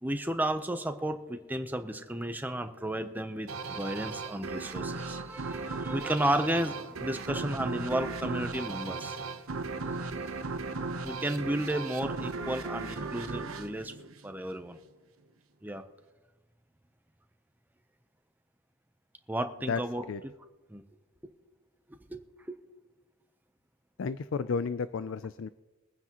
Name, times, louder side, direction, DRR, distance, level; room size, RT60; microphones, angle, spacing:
voice 1, 0.0-9.2 11.0-13.9 14.2-14.8 15.6-15.8 19.3-20.0 20.7-20.8 22.1-22.6, right 1 dB, 10° right, 7 dB, 0.7 m, -33 dB
sound 1, 3.5-14.7, right 3 dB, 90° right, 0.9 m, -37 dB
voice 2, 24.0-25.5, left 5 dB, 65° left, 13 dB, 0.4 m, -32 dB
22.5 x 9.6 x 3.0 m, 1.2 s
head